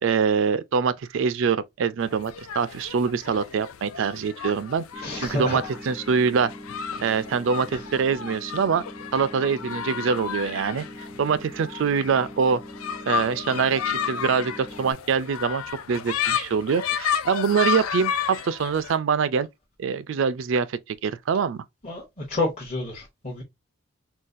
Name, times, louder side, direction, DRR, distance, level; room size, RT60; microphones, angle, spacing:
voice 1, 0.0-6.5 7.0-8.8 9.1-10.8 11.2-12.6 13.1-19.5 19.8-21.6, right 6 dB, 60° right, 0.3 m, -24 dB
sound 1, 2.0-19.0, left 8 dB, 85° left, 0.4 m, -32 dB
sound 2, 4.9-14.9, equal, 5° left, 0.4 m, -42 dB
voice 2, 5.0-5.6 21.8-23.4, left 2 dB, 35° left, 0.8 m, -29 dB
3.9 x 2.3 x 2.5 m
head